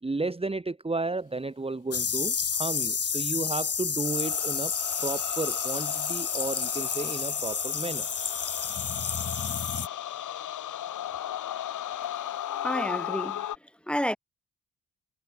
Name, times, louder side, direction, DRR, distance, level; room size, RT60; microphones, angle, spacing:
voice 1, 0.0-8.1, right 3 dB, 20° right, 1.6 m, -33 dB
sound 1, 1.9-9.9, left 6 dB, 45° left, 4.5 m, -30 dB
sound 2, 4.0-13.6, left 11 dB, 70° left, 1.2 m, -36 dB
voice 2, 12.5-13.5 13.9-14.2, equal, 5° left, 2.8 m, -30 dB
supercardioid pair, 65°, 32 cm